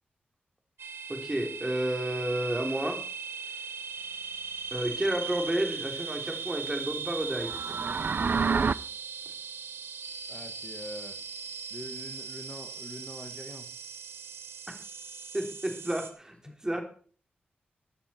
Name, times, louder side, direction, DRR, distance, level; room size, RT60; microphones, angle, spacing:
sound 1, 0.8-16.1, right 6 dB, 90° right, 1.4 m, -39 dB
voice 1, 1.1-3.0 4.7-7.5 15.3-16.4 16.6-16.8, right 1 dB, 15° right, 4 dB, 3.4 m, -31 dB
sound 2, 7.4-8.7, right 5 dB, 55° right, 0.5 m, -27 dB
voice 2, 10.3-11.2 11.7-13.7 16.5-16.6, left 2 dB, 30° left, 6 dB, 1.8 m, -44 dB
15.0 x 9.7 x 4.5 m, 0.43 s
cardioid pair, 65°, 4 cm